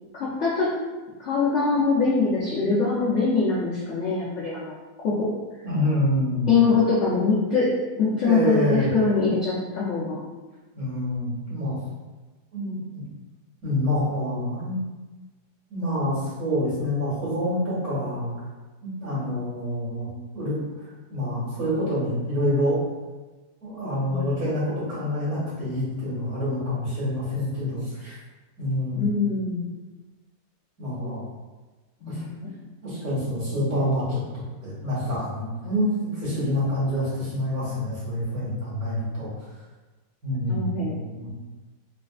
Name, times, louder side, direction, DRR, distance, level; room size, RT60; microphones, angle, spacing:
voice 1, 0.1-0.7 1.2-4.7 5.0-5.3 6.5-7.7 8.0-10.2 24.0-24.3 29.0-29.7 32.0-32.5 40.5-40.9, left 4 dB, 55° left, -8 dB, 0.9 m, -23 dB
voice 2, 5.6-6.6 8.2-8.9 10.7-11.8 12.5-13.0 13.6-14.8 15.7-18.3 18.8-20.1 20.3-20.5 21.1-22.8 23.6-28.1 28.6-29.1 30.8-31.2 32.1-32.2 32.8-34.2 34.6-39.3 40.2-41.3, left 1 dB, 55° right, -12 dB, 2.2 m, -27 dB
4.0 x 3.4 x 2.4 m, 1.2 s
omnidirectional pair, 1.8 m